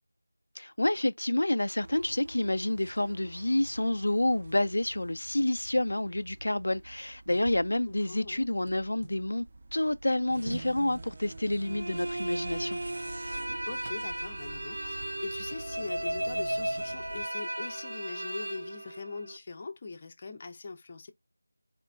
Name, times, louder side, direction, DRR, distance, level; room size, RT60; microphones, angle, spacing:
voice 1, 0.6-9.5 9.7-12.8, left 1 dB, 80° left, 0.4 m, -29 dB
sound 1, 1.8-17.3, right 2 dB, 40° right, 0.5 m, -46 dB
voice 2, 7.9-8.5 13.7-21.1, left 3 dB, 25° left, 0.6 m, -42 dB
sound 2, 11.6-19.4, right 1 dB, 90° right, 0.6 m, -35 dB
4.3 x 2.4 x 3.2 m
figure-of-eight pair, 175°, 0 cm